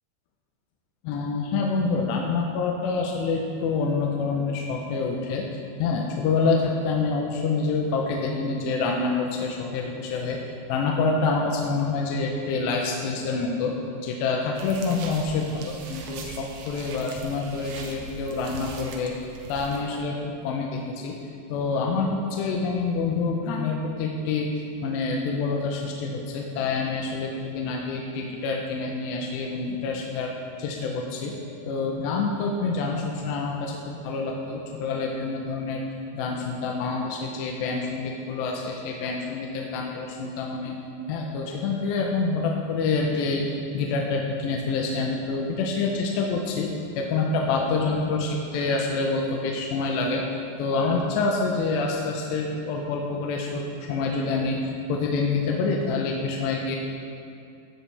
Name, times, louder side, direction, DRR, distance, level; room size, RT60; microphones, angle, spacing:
voice 1, 1.0-5.5 5.8-10.4 10.7-13.7 14.0-19.1 19.5-21.2 21.5-30.3 30.6-35.8 36.1-40.7 41.0-46.7 47.0-50.2 50.6-54.6 54.9-56.8, left 4 dB, 85° left, -1 dB, 2.9 m, -27 dB
sound 1, 14.5-19.8, right 3 dB, 85° right, 3.3 m, -41 dB
15.5 x 7.7 x 3.4 m, 2.4 s
omnidirectional pair, 5.2 m